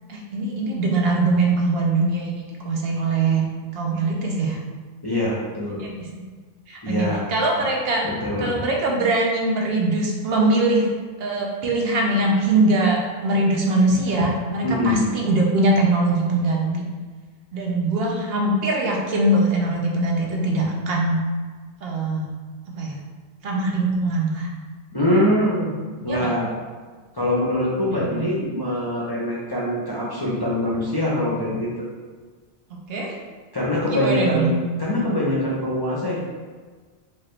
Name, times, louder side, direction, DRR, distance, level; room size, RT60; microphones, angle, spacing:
voice 1, 0.1-2.3 2.6-3.4 3.7-4.6 5.8-6.2 6.7-8.1 8.4-10.9 11.2-16.7 17.5-21.2 21.8-22.3 22.8-23.0 23.4-24.5 26.1-26.3 27.9-28.3 32.7-33.2 33.9-34.6 34.9-35.0, right 2 dB, 70° right, -1 dB, 0.8 m, -22 dB
voice 2, 5.0-5.8 6.8-7.2 8.0-8.5 14.6-15.1 24.9-25.7 26.0-26.5 27.1-31.7 33.5-34.5 34.8-36.2, left 1 dB, 30° left, -6 dB, 0.5 m, -23 dB
4.3 x 2.4 x 3.1 m, 1.5 s
omnidirectional pair, 1.1 m